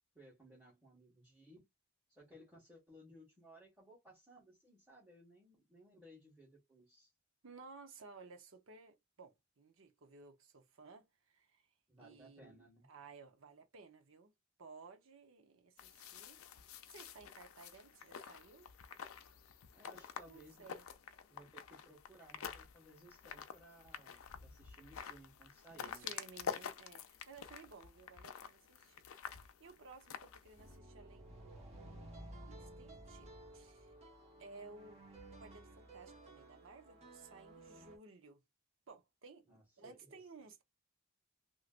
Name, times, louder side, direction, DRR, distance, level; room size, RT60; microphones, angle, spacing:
voice 1, 0.1-1.7 2.1-7.1 11.9-12.9 19.7-20.6 21.3-26.1 39.5-40.2, right 1 dB, 5° right, 1.5 m, -60 dB
voice 2, 7.4-11.6 12.0-14.3 14.6-16.4 16.9-18.7 20.2-20.8 25.8-29.0 29.3-32.0 32.4-33.9 34.4-35.0 35.4-38.4 38.9-40.6, right 4 dB, 70° right, 0.8 m, -57 dB
sound 1, 15.8-30.8, left 7 dB, 85° left, 0.5 m, -49 dB
sound 2, 30.6-38.0, right 1 dB, 30° right, 1.0 m, -55 dB
3.1 x 2.8 x 2.5 m
head